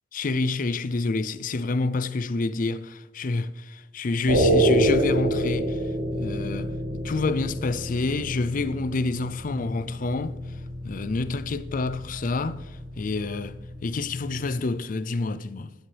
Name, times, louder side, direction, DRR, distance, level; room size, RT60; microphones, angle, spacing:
voice 1, 0.1-5.8 6.1-6.7 7.0-10.4 10.8-15.7, left 3 dB, 45° left, 0.4 m, -28 dB
sound 1, 4.3-14.5, right 1 dB, 90° right, 2.2 m, -28 dB
12.0 x 10.5 x 3.4 m
head